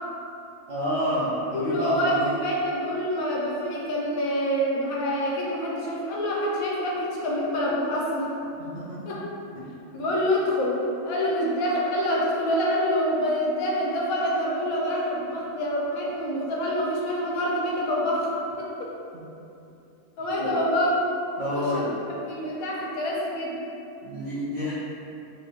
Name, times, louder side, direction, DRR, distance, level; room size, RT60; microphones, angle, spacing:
voice 1, 0.7-2.2 8.6-9.2 9.5-9.6 9.9-10.0 19.1-19.2 20.4-20.5 21.4-22.0 24.0-24.7, equal, 55° right, -12 dB, 1.0 m, -29 dB
voice 2, 1.5-8.4 9.1-9.2 9.9-18.9 20.2-21.0 21.5-21.9 22.2-23.6, equal, 85° left, -3 dB, 1.2 m, -26 dB
4.2 x 2.6 x 3.1 m, 2.7 s
omnidirectional pair, 1.5 m